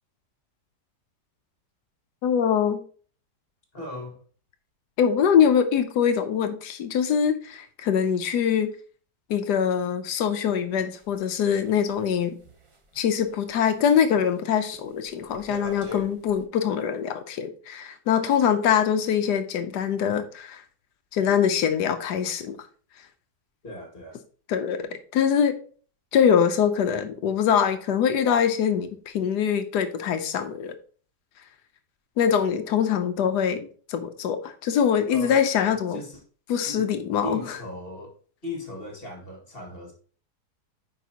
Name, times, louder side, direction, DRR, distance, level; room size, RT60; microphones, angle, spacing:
voice 1, 2.2-2.8 5.0-8.7 9.3-12.4 13.0-20.6 21.1-22.6 24.5-25.5 26.1-30.7 32.2-36.0 36.5-37.4, left 8 dB, 85° left, 1.3 m, -23 dB
voice 2, 3.7-4.2 23.6-24.2 35.1-35.4 35.7-36.2 36.6-36.9 37.2-38.2 38.4-39.9, left 1 dB, 35° left, 2.2 m, -38 dB
sound 1, 10.9-13.7 14.0-14.4 14.7-16.4, left 1 dB, 30° right, 0.6 m, -42 dB
9.2 x 5.4 x 2.8 m
omnidirectional pair, 1.7 m